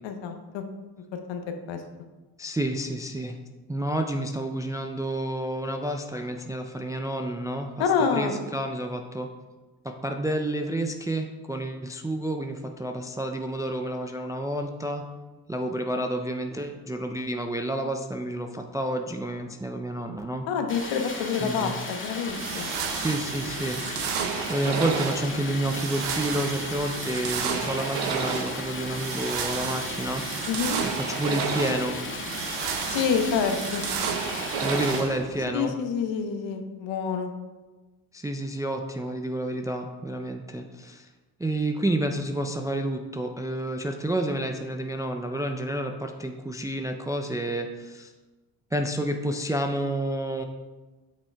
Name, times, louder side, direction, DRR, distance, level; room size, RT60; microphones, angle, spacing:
voice 1, 0.0-0.6 1.1-1.4 1.7-1.8 7.8-8.3 20.5-22.7 30.5-30.8 32.9-33.8 35.5-37.3, left 6 dB, 65° left, 6 dB, 1.0 m, -27 dB
voice 2, 2.4-3.4 3.7-9.3 9.8-15.0 15.5-20.5 21.4-21.8 22.8-24.0 24.5-30.5 30.8-32.0 34.6-35.8 38.1-41.1 41.4-48.1 48.7-50.4, right 1 dB, 10° right, 4 dB, 0.3 m, -30 dB
Stream, 20.7-35.0, left 2 dB, 25° left, 1.9 m, -36 dB
sound 1, 22.3-35.4, right 6 dB, 60° right, 1.0 m, -31 dB
8.3 x 6.0 x 2.3 m, 1.2 s
hypercardioid pair, 65°, 49 cm